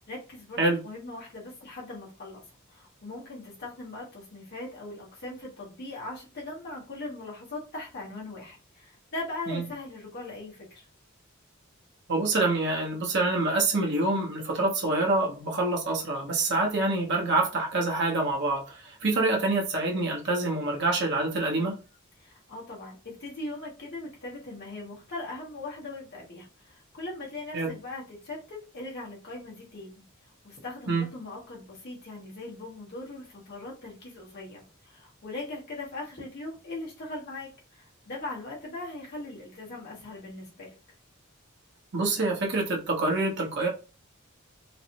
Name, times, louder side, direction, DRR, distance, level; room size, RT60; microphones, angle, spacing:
voice 1, 0.0-10.9 22.2-30.0 30.4-40.8, left 2 dB, 55° left, 1.2 m, -40 dB
voice 2, 12.1-21.8 27.5-27.7 30.9-31.1 41.9-43.7, right 2 dB, 60° right, 0.9 m, -26 dB
3.1 x 2.0 x 2.8 m
head